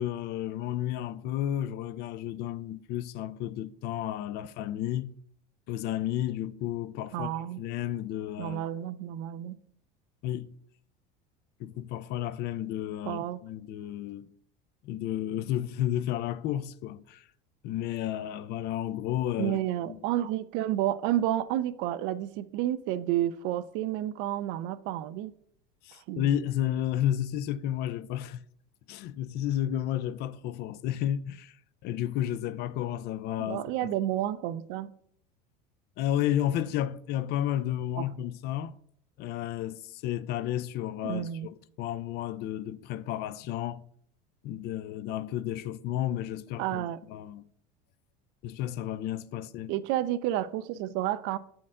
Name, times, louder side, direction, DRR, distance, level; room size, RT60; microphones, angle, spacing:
voice 1, 0.0-5.1 5.7-8.6 10.2-10.5 11.6-14.3 14.8-17.3 17.6-20.0 25.8-28.4 28.9-31.6 31.8-33.6 36.0-38.7 39.2-43.8 44.4-47.4 48.4-49.7, left 11 dB, 50° left, 0.4 m, -32 dB
voice 2, 7.1-7.6 8.4-9.6 13.1-13.4 19.4-25.3 26.1-26.3 33.4-34.9 41.0-41.5 46.6-47.0 49.7-51.4, right 13 dB, 60° right, 0.4 m, -30 dB
7.4 x 4.4 x 3.6 m
supercardioid pair, 110°, 21 cm